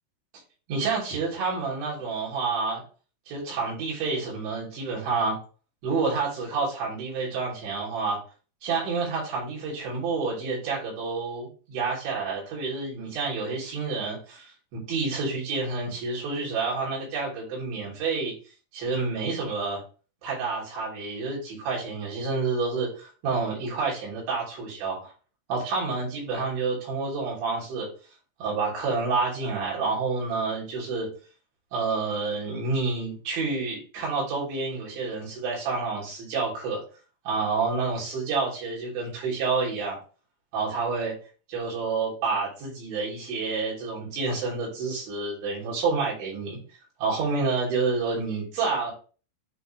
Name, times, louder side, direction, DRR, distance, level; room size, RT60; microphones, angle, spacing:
voice 1, 0.7-2.8 3.3-5.4 5.8-8.2 8.6-18.3 18.7-19.8 20.2-25.1 25.5-27.9 28.4-31.1 31.7-36.8 37.3-40.0 40.5-41.1 41.5-46.6 47.0-48.9, right 4 dB, 85° right, -5 dB, 5.7 m, -29 dB
10.5 x 3.7 x 3.3 m, 0.36 s
omnidirectional pair, 5.1 m